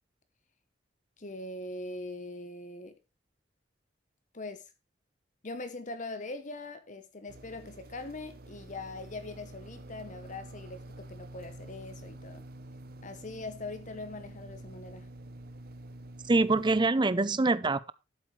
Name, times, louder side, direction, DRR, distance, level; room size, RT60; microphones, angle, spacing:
voice 1, 1.2-2.9 4.3-4.6 5.4-12.4 13.0-15.1, left 2 dB, 40° left, 1.0 m, -41 dB
sound 1, 7.3-16.9, right 1 dB, 55° right, 0.8 m, -48 dB
voice 2, 16.3-17.9, right 3 dB, 25° right, 0.5 m, -25 dB
12.0 x 7.9 x 3.2 m
head